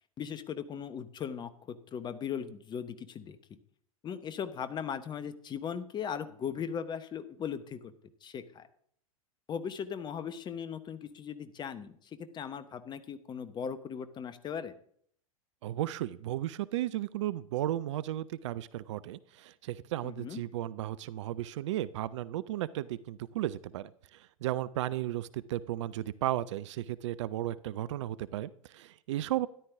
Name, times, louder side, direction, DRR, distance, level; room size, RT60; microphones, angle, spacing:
voice 1, 0.2-3.4 4.0-7.9 8.2-8.7 9.5-14.7 20.0-20.4, left 7 dB, 25° left, 12 dB, 1.0 m, -38 dB
voice 2, 15.6-29.5, right 13 dB, 55° right, 18 dB, 0.5 m, -34 dB
13.0 x 11.0 x 3.7 m, 0.62 s
figure-of-eight pair, 90°, 18 cm